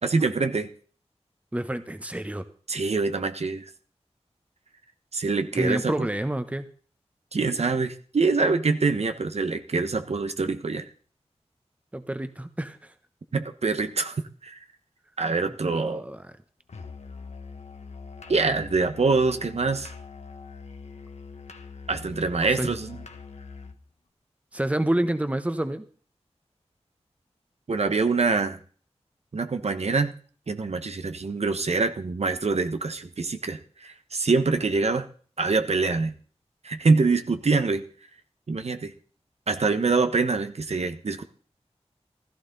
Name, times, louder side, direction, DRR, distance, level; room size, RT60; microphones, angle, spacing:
voice 1, 0.0-0.7 2.7-3.6 5.1-5.9 7.3-10.9 13.3-14.6 15.2-16.0 18.3-19.9 21.9-23.0 27.7-28.6 29.3-30.1 30.5-35.1 35.4-36.1 36.6-37.8 38.5-38.9 39.5-41.2, right 4 dB, 70° right, 8 dB, 1.2 m, -25 dB
voice 2, 1.5-2.4 5.5-6.7 11.9-12.9 15.5-16.3 22.6-22.7 24.5-25.9, right 1 dB, 10° right, 10 dB, 1.1 m, -28 dB
Musical instrument, 16.7-23.8, left 4 dB, 90° left, 1.5 m, -43 dB
15.5 x 14.0 x 4.1 m, 0.43 s
wide cardioid pair, 90°, 11 cm